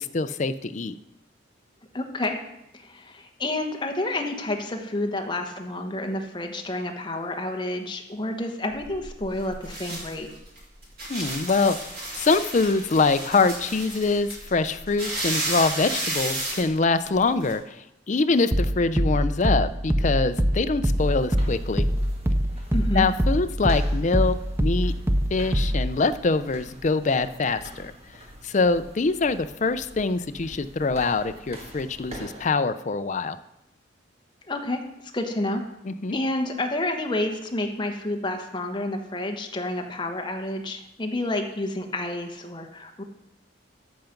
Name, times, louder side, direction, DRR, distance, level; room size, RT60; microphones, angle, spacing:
voice 1, 0.1-0.9 11.1-17.8 18.1-21.9 22.9-24.9 25.3-27.9 28.4-33.4 35.9-36.2, left 3 dB, 40° left, 11 dB, 0.5 m, -24 dB
voice 2, 1.9-2.4 2.7-10.3 22.7-23.1 34.4-34.8 35.1-35.6 36.1-43.0, left 1 dB, 25° left, 4 dB, 1.1 m, -29 dB
sound 1, 8.7-17.5, right 1 dB, 55° right, 3.9 m, -33 dB
sound 2, 18.5-26.0, equal, 10° right, 0.5 m, -24 dB
sound 3, 20.9-32.5, right 1 dB, 30° right, 1.5 m, -45 dB
13.5 x 5.8 x 5.2 m, 0.86 s
head